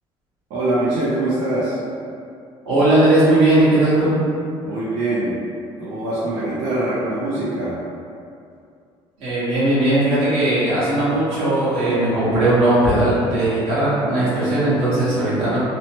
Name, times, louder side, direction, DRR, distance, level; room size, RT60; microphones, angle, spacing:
voice 1, 0.5-1.8 4.6-5.4 5.8-7.8, right 2 dB, 90° right, -9 dB, 0.5 m, -23 dB
voice 2, 2.6-4.1 9.2-15.6, right 1 dB, 60° right, -11 dB, 1.3 m, -18 dB
2.9 x 2.0 x 2.9 m, 2.4 s
cardioid pair, 180°, 11 cm